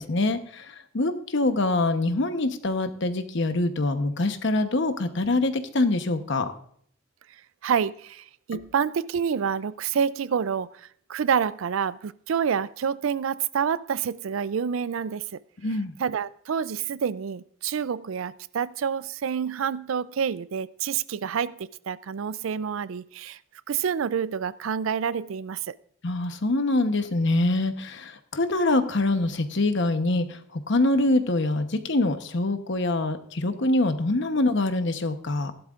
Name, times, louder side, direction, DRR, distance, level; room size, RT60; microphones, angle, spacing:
voice 1, 0.0-6.5 15.6-15.9 26.0-35.5, left 2 dB, 65° left, 1.0 m, -25 dB
voice 2, 7.6-10.7 11.1-15.4 16.0-23.4 23.7-25.7, right 7 dB, 80° right, 0.4 m, -28 dB
15.5 x 11.5 x 2.5 m
head